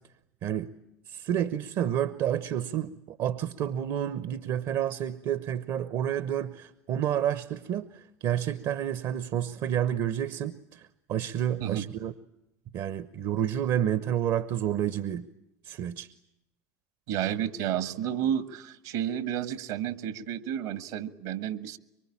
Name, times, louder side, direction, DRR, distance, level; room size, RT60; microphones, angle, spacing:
voice 1, 1.1-12.1 12.7-15.3 15.6-16.1, right 10 dB, 55° right, 1.0 m, -30 dB
voice 2, 17.1-21.8, right 10 dB, 70° right, 1.7 m, -31 dB
24.0 x 24.0 x 8.7 m
hypercardioid pair, 75°, 9 cm